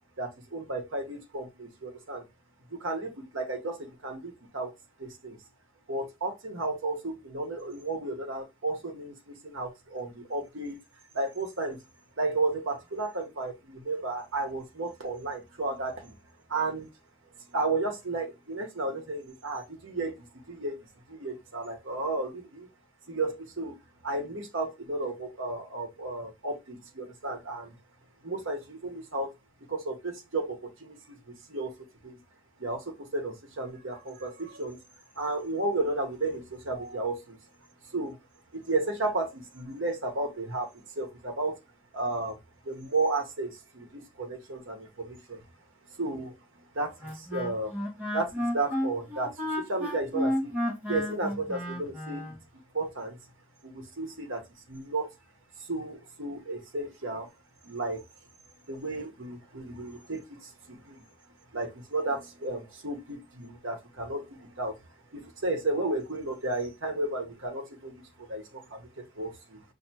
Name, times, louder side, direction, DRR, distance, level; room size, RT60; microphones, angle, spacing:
voice 1, 0.2-2.3 2.7-4.7 5.0-5.4 5.9-10.8 11.1-11.8 12.2-16.1 16.5-16.9 17.5-20.8 21.1-22.7 23.1-27.7 28.2-29.3 29.7-32.2 32.6-34.8 35.2-37.4 37.9-38.2 38.5-41.6 41.9-42.4 42.6-45.4 45.9-47.8 48.1-50.6 50.9-52.3 52.7-53.2 53.6-55.1 55.6-57.3 57.6-58.0 58.7-61.0 61.5-64.8 65.1-69.6, right 2 dB, 65° right, 1.1 m, -33 dB
Wind instrument woodwind instrument, 47.0-52.4, left 1 dB, 10° right, 1.4 m, -32 dB
5.6 x 2.7 x 2.8 m
head